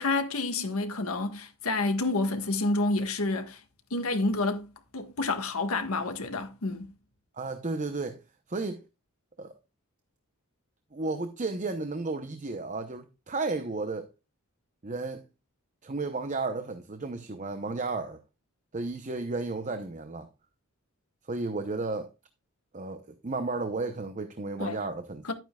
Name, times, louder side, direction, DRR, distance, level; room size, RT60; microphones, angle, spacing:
voice 1, 0.0-3.6 3.9-4.6 4.9-6.9 24.6-24.8 25.2-25.3, left 2 dB, 85° left, 1.5 m, -29 dB
voice 2, 7.3-8.2 8.5-8.8 9.4-9.5 10.9-14.1 14.8-15.2 15.8-18.2 18.7-20.3 21.3-22.1 22.7-25.2, right 3 dB, 35° right, 0.7 m, -33 dB
12.0 x 9.0 x 2.3 m
head